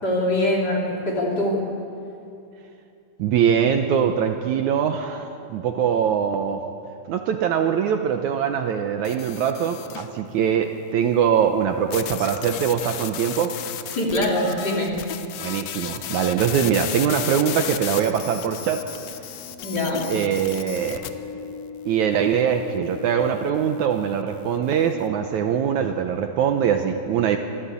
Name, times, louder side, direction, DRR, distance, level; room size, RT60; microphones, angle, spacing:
voice 1, 0.0-1.7 13.9-14.9 19.6-20.0, left 1 dB, 30° left, -3 dB, 3.6 m, -23 dB
voice 2, 3.2-6.6 7.1-13.5 15.4-18.9 20.1-21.0 21.9-27.4, right 8 dB, 70° right, 5 dB, 2.1 m, -22 dB
sound 1, 9.0-10.1 11.9-21.1, left 11 dB, 70° left, 1.6 m, -34 dB
sound 2, 17.6-24.4, left 8 dB, 55° left, 7.9 m, -41 dB
24.5 x 14.5 x 8.4 m, 2.6 s
omnidirectional pair, 3.8 m